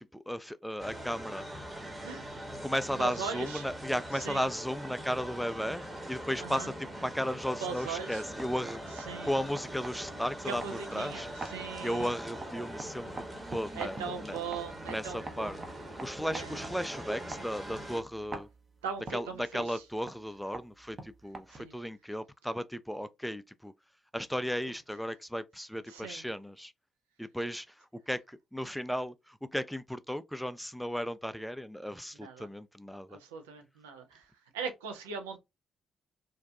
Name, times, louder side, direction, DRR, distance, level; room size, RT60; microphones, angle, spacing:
voice 1, 0.1-1.4 2.6-6.7 7.0-8.8 9.0-11.3 11.8-14.4 14.9-15.6 16.0-18.5 19.1-23.7 24.1-26.7 27.2-33.2, equal, ahead, 0.3 m, -35 dB
sound 1, 0.8-18.0, right 1 dB, 20° right, 0.9 m, -42 dB
voice 2, 3.0-3.6 4.1-4.5 6.4-6.7 7.6-8.2 9.0-9.4 10.4-12.1 13.7-15.7 16.3-16.7 18.8-19.8 21.5-21.8 25.9-26.2 32.1-32.5 33.1-35.4, right 6 dB, 90° right, 0.4 m, -40 dB
sound 2, 8.1-21.8, right 3 dB, 40° right, 0.6 m, -48 dB
2.6 x 2.2 x 2.3 m
hypercardioid pair, 45°, 0 cm